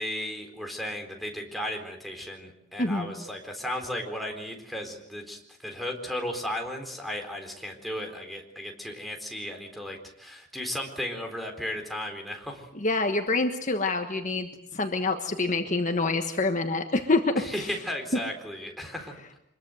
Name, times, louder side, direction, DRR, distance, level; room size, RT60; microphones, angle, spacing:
voice 1, 0.0-12.7 17.4-19.4, left 1 dB, ahead, 1 dB, 4.1 m, -35 dB
voice 2, 2.8-3.1 12.7-17.7, left 3 dB, 40° left, 5 dB, 1.4 m, -26 dB
25.0 x 22.0 x 7.9 m, 0.79 s
head